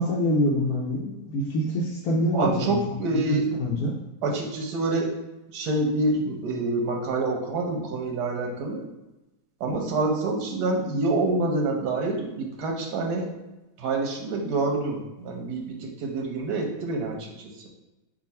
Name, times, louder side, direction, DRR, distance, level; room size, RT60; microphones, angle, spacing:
voice 1, 0.0-2.7 3.3-3.9, equal, 75° left, -4 dB, 1.1 m, -25 dB
voice 2, 2.3-3.5 4.2-5.1 5.5-8.8 9.6-13.3 13.8-17.7, right 2 dB, 90° right, 1 dB, 1.3 m, -27 dB
3.7 x 2.4 x 4.1 m, 1.0 s
omnidirectional pair, 1.7 m